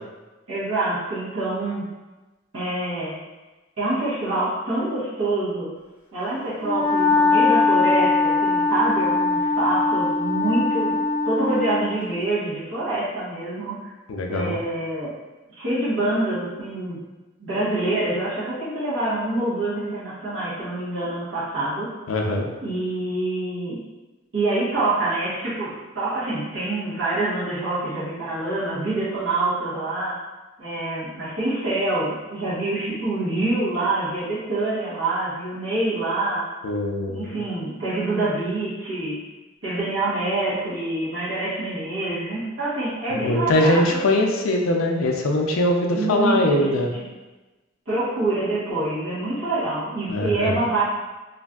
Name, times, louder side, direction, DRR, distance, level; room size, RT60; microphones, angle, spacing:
voice 1, 0.5-1.8 2.5-3.1 3.8-5.7 6.1-13.7 14.3-15.1 15.5-17.0 17.4-21.9 22.6-23.8 24.3-30.1 30.6-36.4 37.1-39.2 39.6-44.0 45.9-46.8 47.9-50.8, right 2 dB, 70° right, -11 dB, 1.0 m, -26 dB
Wind instrument woodwind instrument, 6.6-12.0, left 3 dB, 35° left, 0.7 m, -21 dB
voice 2, 14.1-14.6 22.1-22.5 36.6-37.4 43.1-46.9 50.1-50.6, left 1 dB, 80° left, 1 dB, 0.4 m, -22 dB
3.1 x 2.5 x 2.3 m, 1.2 s
head